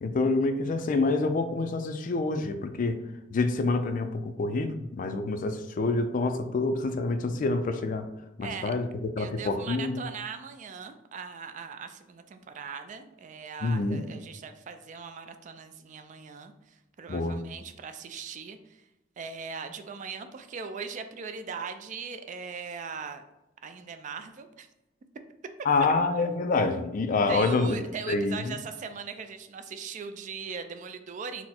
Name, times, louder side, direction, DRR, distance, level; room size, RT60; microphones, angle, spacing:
voice 1, 0.0-3.0 3.3-8.1 8.4-10.0 13.6-14.0 17.1-17.4 25.6-27.8 28.1-28.6, left 3 dB, 45° left, 9 dB, 0.3 m, -27 dB
voice 2, 8.4-8.7 9.2-18.8 19.2-23.2 23.6-24.7 25.8-25.9 27.3-31.5, right 5 dB, 40° right, 8 dB, 0.3 m, -39 dB
4.1 x 2.1 x 4.2 m, 0.96 s
head